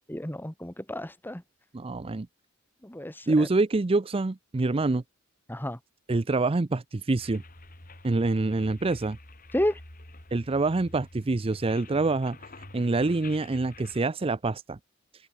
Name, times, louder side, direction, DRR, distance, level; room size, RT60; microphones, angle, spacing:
voice 1, 0.1-1.4 2.8-3.5 5.5-5.8 9.5-9.8, left 1 dB, 10° left, 1.9 m, -31 dB
voice 2, 1.7-2.3 3.3-5.0 6.1-7.4 8.0-9.2 10.3-12.4 12.7-14.8, right 3 dB, 25° right, 0.5 m, -26 dB
sound 1, 7.2-14.0, left 2 dB, 45° left, 4.8 m, -48 dB
head